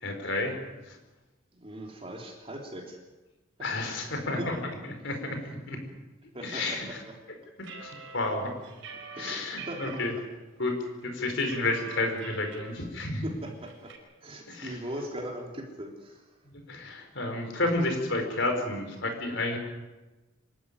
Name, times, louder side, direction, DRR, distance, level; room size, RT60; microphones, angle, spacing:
voice 1, 0.0-0.5 0.9-1.0 3.6-4.6 5.0-5.4 5.7-5.8 6.4-6.9 7.8-8.5 9.2-10.1 10.6-13.2 14.5-14.8 16.5-19.6, left 2 dB, 65° left, 5 dB, 5.1 m, -31 dB
voice 2, 1.6-3.0 3.6-4.5 6.3-7.1 9.1-10.0 13.2-13.9 14.2-16.2, right 1 dB, 30° right, 0 dB, 3.5 m, -40 dB
sound 1, 7.6-10.1 10.6-10.7 11.0-12.7 13.0-13.1 13.5-14.0, right 5 dB, 75° right, 5.6 m, -44 dB
26.5 x 13.5 x 10.0 m, 1.1 s
head